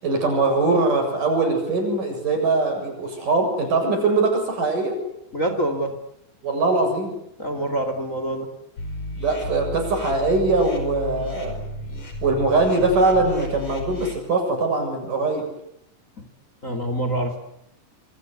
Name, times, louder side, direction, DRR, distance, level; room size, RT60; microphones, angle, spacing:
voice 1, 0.0-5.0 6.4-7.1 9.2-11.6 12.2-15.5, right 3 dB, 65° right, 4 dB, 9.0 m, -21 dB
voice 2, 5.3-6.0 7.4-8.5 16.2-16.3 16.6-17.4, right 1 dB, 25° left, 8 dB, 2.7 m, -26 dB
sound 1, 8.8-14.1, left 3 dB, 50° left, 6.5 m, -33 dB
27.5 x 25.5 x 8.3 m, 0.75 s
omnidirectional pair, 4.0 m